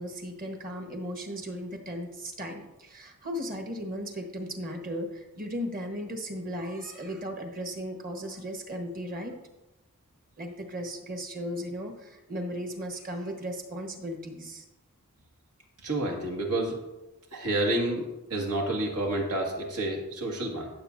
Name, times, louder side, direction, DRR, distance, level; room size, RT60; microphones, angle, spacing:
voice 1, 0.0-9.4 10.4-14.6, equal, 40° right, 3 dB, 1.3 m, -36 dB
voice 2, 15.8-16.8 17.3-18.0 18.3-20.7, right 1 dB, 90° right, 1 dB, 2.1 m, -29 dB
14.5 x 7.2 x 2.7 m, 1.0 s
head